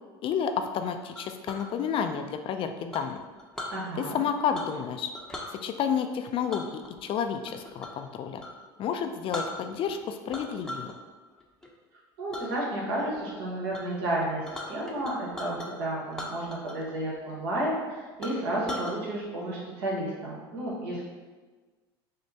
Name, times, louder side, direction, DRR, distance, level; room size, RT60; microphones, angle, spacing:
voice 1, 0.2-3.2 4.0-5.1 5.5-8.4 8.8-10.9, left 7 dB, 45° left, 7 dB, 0.3 m, -30 dB
Chink clink, 1.2-1.7 2.9-3.8 4.5-4.9 5.1-5.5 6.5-8.0 8.4-8.6 9.0-9.1 9.3-10.0 10.3-10.9 11.3-11.7 12.3-12.5 13.0-13.3 13.7-13.8 14.1-15.7 16.1-16.9 17.2-17.3 17.8-17.9 18.2-19.0, left 1 dB, 5° left, 0.7 m, -39 dB
voice 2, 3.7-4.2 12.2-21.0, right 1 dB, 70° right, -4 dB, 1.3 m, -32 dB
6.2 x 2.1 x 2.7 m, 1.3 s
hypercardioid pair, 80°, 13 cm